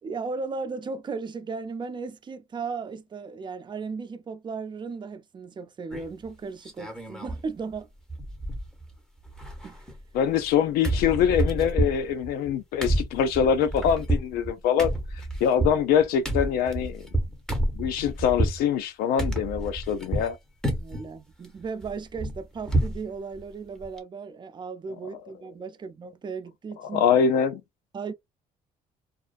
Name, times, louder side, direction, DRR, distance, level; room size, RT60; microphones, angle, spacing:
voice 1, 0.0-7.9 9.6-9.9 20.7-27.0 27.9-28.1, right 4 dB, 30° right, 0.5 m, -36 dB
sound 1, 5.9-6.3 6.6-7.4 7.7-7.8 8.1-8.9 9.2-10.6 10.8-18.6 19.2-20.3 20.6-21.1 21.4-23.0 23.4-23.5 23.8-24.0, right 1 dB, 5° left, 0.9 m, -29 dB
voice 2, 10.1-14.9 15.4-17.1 17.8-20.4 26.8-27.6, left 8 dB, 90° left, 0.4 m, -24 dB
2.4 x 2.2 x 2.4 m
cardioid pair, 80°, 15 cm